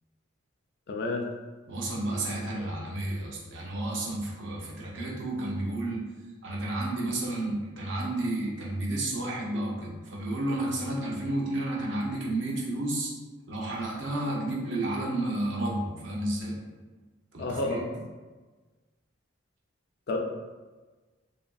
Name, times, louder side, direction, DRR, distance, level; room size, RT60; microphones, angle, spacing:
voice 1, 0.9-1.3 17.4-17.8 20.1-20.2, left 2 dB, 50° left, 1 dB, 0.3 m, -29 dB
voice 2, 1.7-6.1 6.4-13.1 13.5-16.6 17.3-18.0, right 1 dB, 65° right, -3 dB, 0.6 m, -31 dB
2.8 x 2.5 x 2.2 m, 1.3 s
head